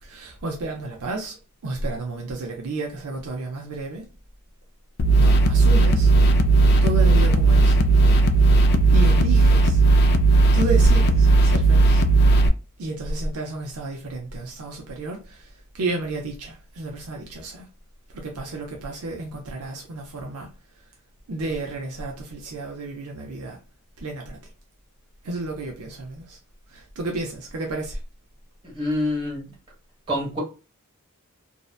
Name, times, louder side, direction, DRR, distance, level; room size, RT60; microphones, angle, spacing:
voice 1, 0.0-1.4 1.6-4.1 5.1-6.1 6.8-7.8 8.9-9.8 10.5-12.0 12.8-17.7 18.1-20.5 21.3-23.6 24.0-24.4 25.2-26.4 26.7-28.0, right 2 dB, 70° right, 0.6 m, -31 dB
sound 1, 5.0-12.5, right 3 dB, 50° left, 0.3 m, -16 dB
voice 2, 28.6-29.5 30.1-30.4, left 1 dB, 20° right, 1.4 m, -26 dB
2.7 x 2.1 x 2.3 m
head